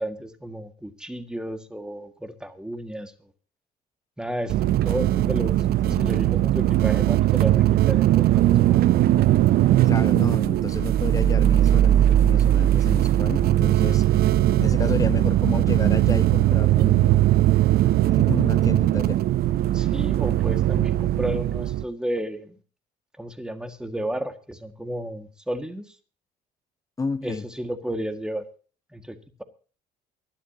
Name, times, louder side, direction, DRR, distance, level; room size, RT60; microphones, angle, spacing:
voice 1, 0.0-3.1 4.2-4.6 4.8-8.8 19.7-22.6 23.2-25.9 27.2-28.5 28.9-29.4, right 1 dB, 5° right, 1.8 m, -32 dB
sound 1, 4.5-21.8, right 13 dB, 65° right, 0.6 m, -19 dB
voice 2, 5.2-5.5 5.9-6.1 9.8-14.2 14.6-17.3 18.1-19.2 27.0-27.4, left 4 dB, 20° left, 0.9 m, -31 dB
23.5 x 11.5 x 2.8 m
cardioid pair, 110°, 17 cm